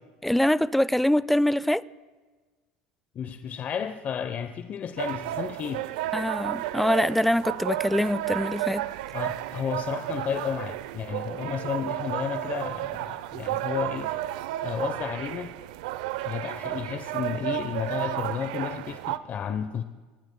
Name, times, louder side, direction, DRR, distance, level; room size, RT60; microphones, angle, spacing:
voice 1, 0.2-1.8 6.1-8.9, left 1 dB, 5° left, 0.4 m, -24 dB
voice 2, 3.1-5.9 9.1-14.2 14.6-15.5 16.2-19.8, left 8 dB, 40° left, 0.8 m, -32 dB
sound 1, 5.0-19.2, right 15 dB, 75° right, 0.6 m, -32 dB
26.5 x 22.5 x 2.2 m
hypercardioid pair, 85°, 4 cm